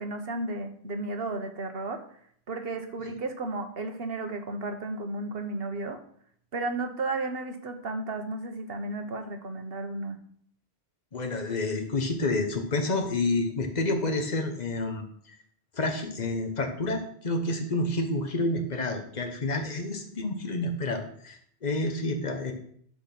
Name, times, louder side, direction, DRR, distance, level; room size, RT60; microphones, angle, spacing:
voice 1, 0.0-2.0 2.5-6.0 6.5-10.2, right 2 dB, 60° right, 6 dB, 1.3 m, -33 dB
voice 2, 11.1-15.0 15.7-22.5, left 2 dB, 40° left, 4 dB, 1.3 m, -29 dB
11.5 x 4.3 x 6.0 m, 0.63 s
omnidirectional pair, 1.1 m